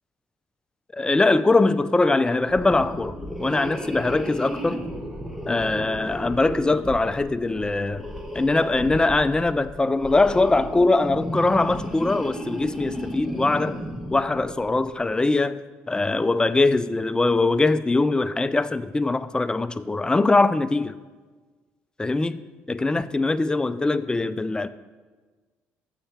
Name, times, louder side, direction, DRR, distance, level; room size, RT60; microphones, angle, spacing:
voice 1, 0.9-4.8 5.5-8.1 8.3-13.8 14.1-15.6 15.9-21.0 22.0-22.4 22.7-24.7, left 2 dB, 15° left, 14 dB, 0.4 m, -22 dB
sound 1, 2.4-14.9, equal, 5° right, 1.0 m, -34 dB
7.0 x 6.5 x 4.4 m, 1.4 s
supercardioid pair, 70°, 5 cm